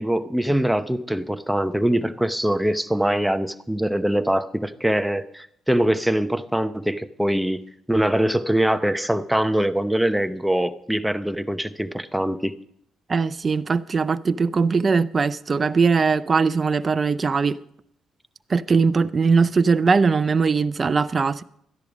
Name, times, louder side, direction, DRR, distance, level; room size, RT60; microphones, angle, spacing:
voice 1, 0.0-7.6 7.9-12.6, right 1 dB, 5° right, 0.8 m, -23 dB
voice 2, 13.1-17.6 18.5-21.4, right 5 dB, 35° right, 0.5 m, -20 dB
13.5 x 10.5 x 5.1 m
cardioid pair, 90°, 0 cm